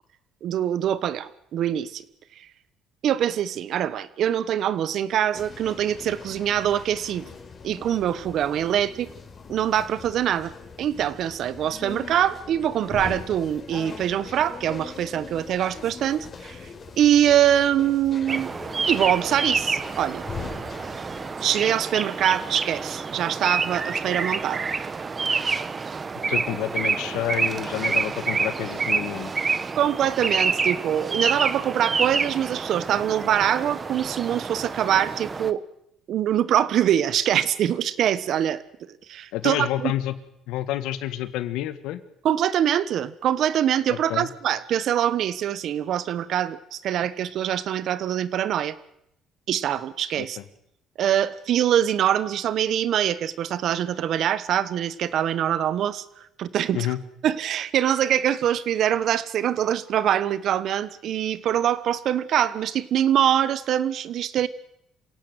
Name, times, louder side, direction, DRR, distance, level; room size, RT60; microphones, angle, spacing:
voice 1, 0.4-2.0 2.4-2.5 3.0-7.3 7.6-9.1 9.5-10.5 10.8-16.7 17.0-18.5 18.8-20.2 21.4-24.6 29.8-35.6 36.1-38.6 39.1-39.9 42.2-48.8 49.5-50.4 51.0-56.9 57.2-64.5, right 10 dB, 60° right, 16 dB, 1.3 m, -24 dB
sound 1, 5.3-21.4, left 5 dB, 35° left, 4.6 m, -41 dB
sound 2, 18.3-35.5, right 5 dB, 30° right, 1.2 m, -28 dB
voice 2, 26.3-29.3 39.3-40.1 40.5-42.0 44.1-44.3 50.2-50.4 56.7-57.0, left 13 dB, 90° left, 13 dB, 1.6 m, -29 dB
27.0 x 17.0 x 8.0 m, 0.79 s
cardioid pair, 120°, 0 cm